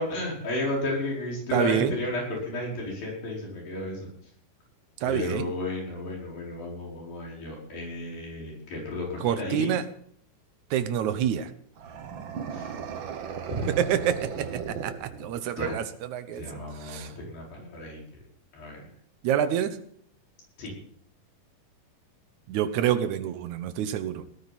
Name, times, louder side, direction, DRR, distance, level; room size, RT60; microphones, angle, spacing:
voice 1, 0.0-4.1 5.0-9.7 12.5-12.7 13.6-13.7 15.6-15.8 16.3-18.0 18.5-18.9 20.6-20.7, left 2 dB, 90° left, -3 dB, 6.8 m, -33 dB
voice 2, 1.5-2.0 5.0-5.5 9.2-9.9 10.7-11.5 13.7-16.4 16.8-17.1 19.2-19.8 22.5-24.2, right 9 dB, 70° right, 11 dB, 2.1 m, -27 dB
sound 1, 11.8-15.6, right 7 dB, 85° right, 1.0 m, -36 dB
19.5 x 13.5 x 4.2 m, 0.63 s
omnidirectional pair, 4.0 m